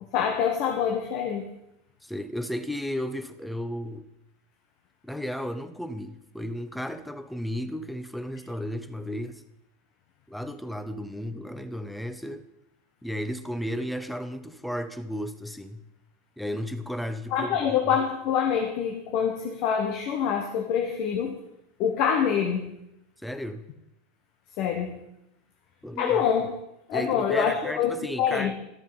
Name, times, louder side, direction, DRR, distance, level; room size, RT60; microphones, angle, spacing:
voice 1, 0.1-1.5 17.3-21.4 21.8-22.7 24.6-25.0 26.0-26.6 26.9-27.9 28.2-28.5, left 7 dB, 55° left, 3 dB, 1.3 m, -25 dB
voice 2, 2.0-4.1 5.0-9.4 10.3-12.5 13.0-15.8 16.4-17.6 23.2-23.6 25.8-26.2 26.9-28.5, equal, 5° left, 11 dB, 1.0 m, -34 dB
12.5 x 7.1 x 5.9 m, 0.84 s
hypercardioid pair, 90°, 0 cm